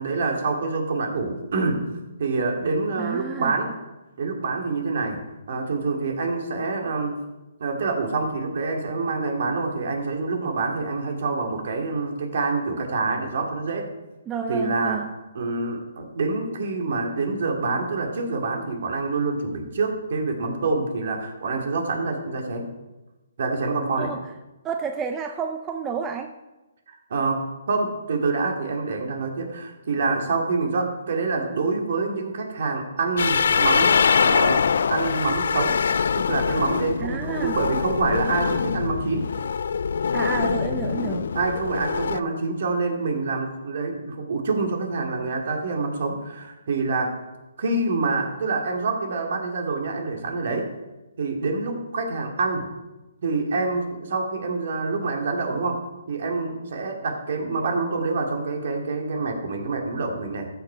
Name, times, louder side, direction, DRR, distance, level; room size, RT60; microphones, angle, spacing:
voice 1, 0.0-1.8 2.2-3.7 4.2-5.2 5.5-7.2 7.6-13.9 14.5-15.0 15.3-22.7 23.4-24.1 26.9-35.8 36.2-39.3 41.3-47.2 47.6-50.7 51.2-52.7 53.2-55.8 56.1-60.5, right 3 dB, 60° right, 2 dB, 2.3 m, -26 dB
voice 2, 3.0-3.6 14.3-15.1 24.0-24.2 24.6-26.3 37.0-37.6 40.1-41.3, right 6 dB, 15° right, 5 dB, 0.5 m, -30 dB
sound 1, 33.2-42.2, left 6 dB, 65° left, 0.3 m, -23 dB
14.0 x 6.0 x 4.9 m, 1.1 s
hypercardioid pair, 155°, 0 cm